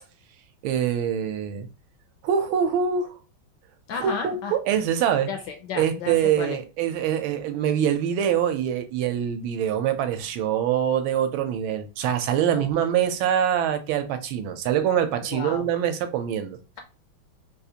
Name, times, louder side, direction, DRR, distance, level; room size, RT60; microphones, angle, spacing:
voice 1, 0.6-1.7 2.2-3.1 3.9-5.3 5.8-16.6, right 9 dB, 80° right, 1.4 m, -24 dB
voice 2, 3.9-4.5 5.3-6.6 12.5-12.7 15.3-15.7, left 6 dB, 75° left, 1.0 m, -33 dB
3.8 x 2.5 x 2.7 m
omnidirectional pair, 2.2 m